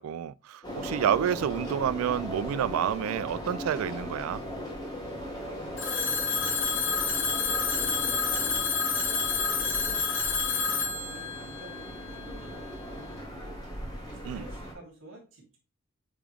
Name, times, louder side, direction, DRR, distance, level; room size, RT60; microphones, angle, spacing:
voice 1, 0.0-4.4 14.2-14.5, right 9 dB, 90° right, 0.3 m, -29 dB
sound 1, 0.6-14.7, equal, 20° left, 1.7 m, -38 dB
voice 2, 5.1-7.1 7.4-10.0 10.4-13.6 13.9-15.6, right 2 dB, 70° right, 3.0 m, -51 dB
Telephone, 5.8-12.6, left 5 dB, 60° left, 1.3 m, -29 dB
8.5 x 3.6 x 3.4 m
head